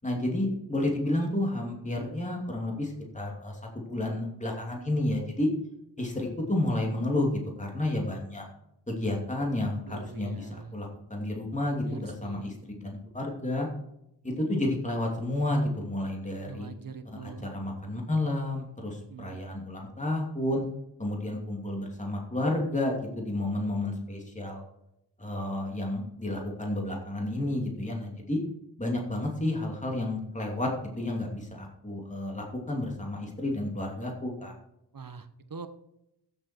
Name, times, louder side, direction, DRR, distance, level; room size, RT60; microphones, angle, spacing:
voice 1, 0.0-5.5 6.0-7.3 7.6-8.4 8.9-13.7 14.2-16.7 17.2-20.6 21.0-24.6 25.2-28.4 28.8-30.7 31.0-34.5, left 1 dB, 15° left, 0 dB, 2.7 m, -31 dB
voice 2, 9.8-10.8 11.6-12.5 16.4-17.5 19.0-19.4 34.9-35.7, right 4 dB, 50° right, 9 dB, 1.1 m, -43 dB
15.0 x 7.4 x 4.5 m, 0.82 s
wide cardioid pair, 75°, 43 cm